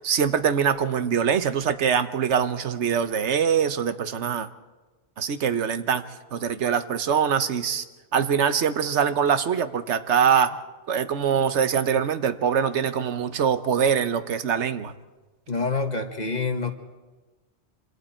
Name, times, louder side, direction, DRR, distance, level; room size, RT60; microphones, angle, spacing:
voice 1, 0.0-4.5 5.2-6.0 6.3-7.8 8.1-10.6 10.9-14.9, right 7 dB, 70° right, 11 dB, 1.2 m, -23 dB
voice 2, 15.5-16.7, left 4 dB, 35° left, 6 dB, 1.6 m, -26 dB
26.5 x 26.0 x 4.4 m, 1.2 s
omnidirectional pair, 1.2 m